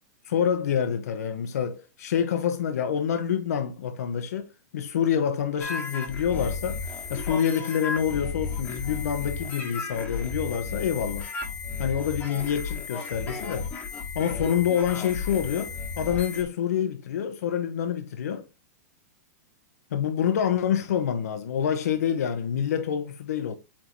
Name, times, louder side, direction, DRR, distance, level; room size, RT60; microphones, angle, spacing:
voice 1, 0.2-11.3 11.8-13.7 14.1-18.5 19.9-23.5, left 8 dB, 65° left, 1.0 m, -27 dB
sound 1, 5.6-16.4, left 4 dB, 15° left, 1.5 m, -34 dB
8.7 x 3.8 x 3.1 m
supercardioid pair, 170°, 9 cm